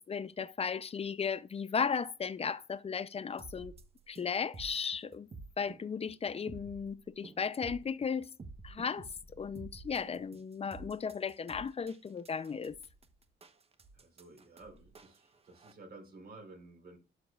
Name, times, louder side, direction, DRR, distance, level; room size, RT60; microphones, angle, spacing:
voice 1, 0.0-3.7 4.1-5.3 5.6-8.3 8.6-9.1 9.4-12.8, left 6 dB, 30° left, 0.6 m, -35 dB
sound 1, 3.4-15.7, right 3 dB, 30° right, 1.1 m, -51 dB
voice 2, 9.9-10.2 13.9-17.0, right 2 dB, 50° right, 4.0 m, -53 dB
12.0 x 5.2 x 2.4 m
cardioid pair, 90°, 20 cm